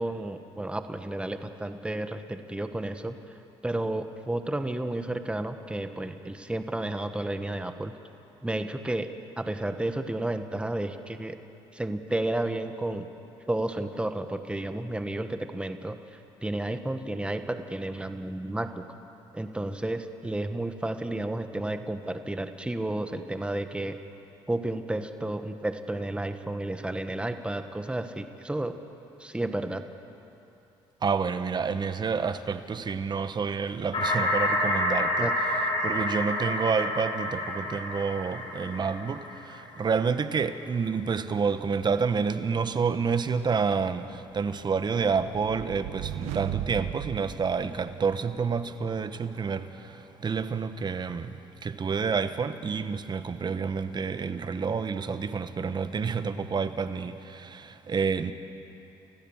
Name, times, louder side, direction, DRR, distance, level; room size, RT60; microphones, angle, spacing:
voice 1, 0.0-3.1 3.6-7.9 8.4-9.1 9.4-11.4 11.7-13.1 13.5-16.0 16.4-18.9 19.3-24.0 24.5-28.8 29.2-29.8 35.2-35.3, right 1 dB, 10° right, 1.4 m, -32 dB
voice 2, 31.0-58.3, right 5 dB, 40° right, 1.3 m, -29 dB
sound 1, 33.9-39.6, left 1 dB, 45° left, 7.2 m, -29 dB
sound 2, 45.1-48.3, right 12 dB, 90° right, 0.8 m, -37 dB
30.0 x 15.5 x 7.4 m
supercardioid pair, 75°, 12 cm